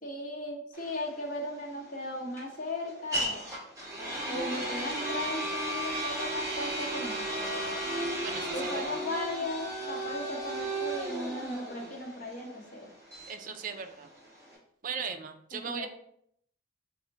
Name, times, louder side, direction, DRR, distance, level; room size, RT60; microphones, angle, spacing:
voice 1, 0.0-3.5 4.3-7.7 8.5-12.9 15.6-15.9, left 1 dB, 45° left, -1 dB, 0.8 m, -37 dB
sound 1, 0.7-14.6, right 1 dB, 20° right, 1.2 m, -35 dB
voice 2, 8.2-9.0 13.3-14.1 14.8-15.9, right 6 dB, 40° right, 7 dB, 0.3 m, -38 dB
3.4 x 2.1 x 3.9 m, 0.70 s
head